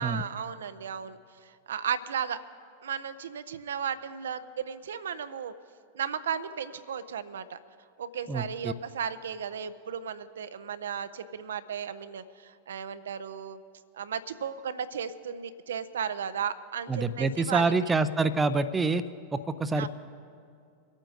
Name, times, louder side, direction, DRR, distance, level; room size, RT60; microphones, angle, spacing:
voice 1, 0.0-2.4 2.8-5.5 5.9-7.6 8.0-13.6 13.9-17.7 19.8-19.9, right 7 dB, 65° right, 13 dB, 0.5 m, -35 dB
voice 2, 8.3-8.7 16.9-19.0 19.3-19.9, right 3 dB, 15° right, 12 dB, 0.5 m, -26 dB
24.5 x 8.9 x 3.9 m, 2.4 s
figure-of-eight pair, 90°, 0 cm